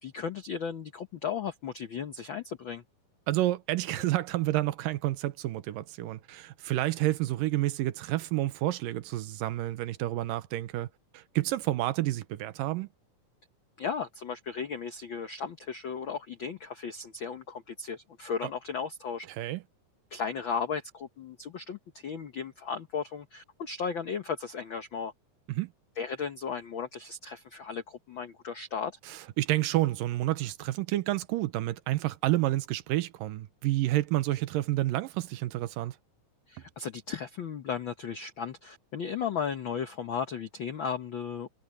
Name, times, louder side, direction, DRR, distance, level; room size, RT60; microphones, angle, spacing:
voice 1, 0.0-2.8 13.8-19.3 20.1-25.1 26.0-28.9 36.5-41.5, left 6 dB, 85° left, 1.0 m, -35 dB
voice 2, 3.3-10.9 11.1-12.9 18.4-18.5 19.3-19.6 25.5-25.7 29.1-36.0, right 16 dB, 90° right, 2.6 m, -29 dB
omnidirectional pair, 3.8 m